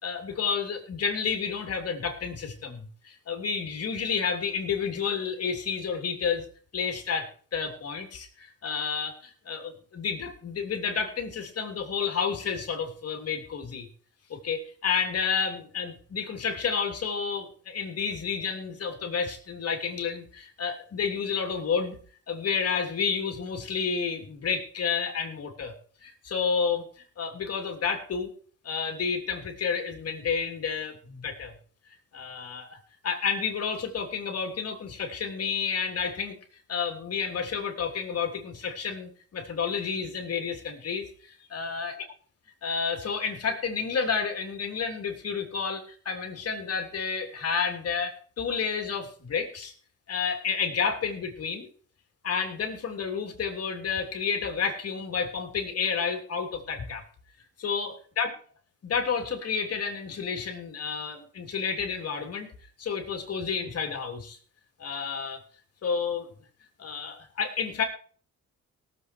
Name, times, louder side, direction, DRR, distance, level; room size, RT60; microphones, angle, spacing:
voice 1, 0.0-6.5 6.7-13.9 14.3-22.0 22.3-25.7 26.0-26.9 27.2-28.3 28.6-31.5 32.1-32.8 33.0-36.4 36.7-41.9 42.6-49.7 50.1-51.7 52.2-57.0 57.6-58.3 58.8-62.5 62.8-64.4 64.8-65.4 65.8-66.3 66.8-67.8, left 6 dB, 55° left, 4 dB, 3.2 m, -30 dB
18.0 x 7.6 x 4.7 m, 0.43 s
cardioid pair, 90°, 30 cm